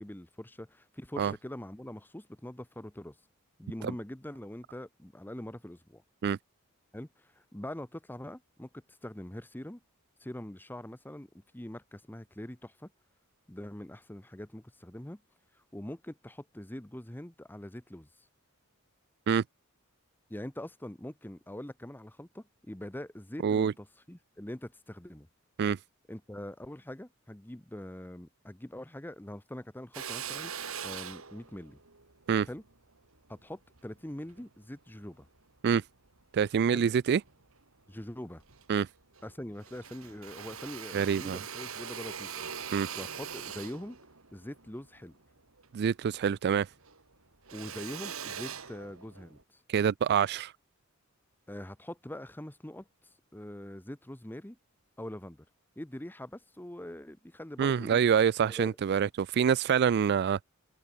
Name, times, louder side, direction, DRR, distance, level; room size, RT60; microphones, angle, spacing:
voice 1, 0.0-3.1 3.6-6.0 6.9-9.8 10.2-11.3 11.5-12.9 13.5-15.2 15.7-18.1 20.3-25.3 26.1-30.5 30.8-31.8 32.5-32.6 33.3-35.3 36.7-36.9 37.9-38.4 39.2-44.0 44.3-45.1 47.5-49.6 51.5-52.9 53.3-54.6 55.0-55.4 55.8-58.0 58.6-58.8, left 1 dB, 10° left, 1.0 m, -43 dB
voice 2, 23.4-23.7 25.6-25.8 32.3-32.5 35.6-35.8 36.3-37.2 38.7-38.9 40.9-41.4 42.7-42.9 45.7-46.7 49.7-50.5 57.6-60.4, right 7 dB, 50° right, 0.3 m, -26 dB
Drill, 29.9-34.5 35.0-36.2 36.7-37.6 38.0-38.1 38.3-39.3 39.6-46.3 46.6-49.4, right 8 dB, 70° right, 3.0 m, -42 dB
head